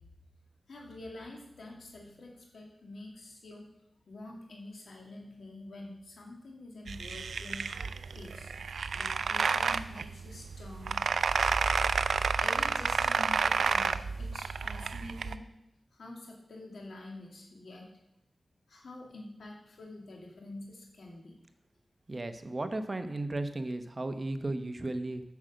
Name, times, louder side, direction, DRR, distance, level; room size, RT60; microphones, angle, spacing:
voice 1, 0.7-3.7 4.1-7.7 8.1-8.5 8.9-11.0 12.4-15.5 15.9-17.9 18.7-21.3, left 2 dB, 85° left, 0 dB, 2.5 m, -47 dB
sound 1, 6.9-15.4, right 5 dB, 90° right, 0.4 m, -30 dB
voice 2, 22.1-25.2, right 2 dB, 35° right, 8 dB, 0.9 m, -35 dB
8.2 x 6.5 x 7.6 m, 0.82 s
wide cardioid pair, 70°, 0 cm